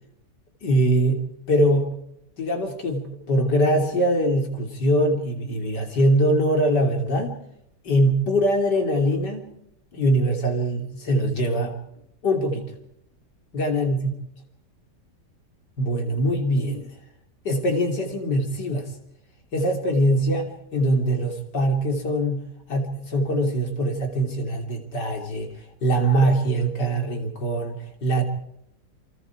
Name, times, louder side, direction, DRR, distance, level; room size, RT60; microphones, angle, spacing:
voice 1, 0.6-1.2 1.5-2.0 2.4-7.4 7.8-9.5 9.9-11.8 12.2-12.7 13.5-14.1 15.8-16.9 17.5-18.9 19.5-22.4 22.7-25.5 25.8-28.2, right 1 dB, 80° left, 4 dB, 3.8 m, -22 dB
29.0 x 24.5 x 4.8 m, 0.76 s
omnidirectional pair, 1.8 m